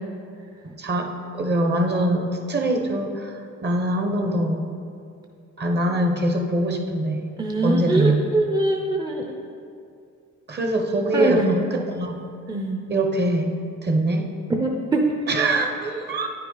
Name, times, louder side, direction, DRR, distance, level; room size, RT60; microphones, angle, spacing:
voice 1, 0.6-4.6 5.6-7.3 7.6-8.2 10.5-12.1 12.9-13.6 13.8-14.3 15.3-16.3, right 1 dB, 35° right, 3 dB, 1.0 m, -23 dB
voice 2, 7.4-9.2 11.1-11.5 12.5-12.8 14.5-15.0, right 2 dB, 15° right, 1 dB, 0.6 m, -23 dB
9.2 x 5.7 x 3.9 m, 2.4 s
cardioid pair, 90°, 30 cm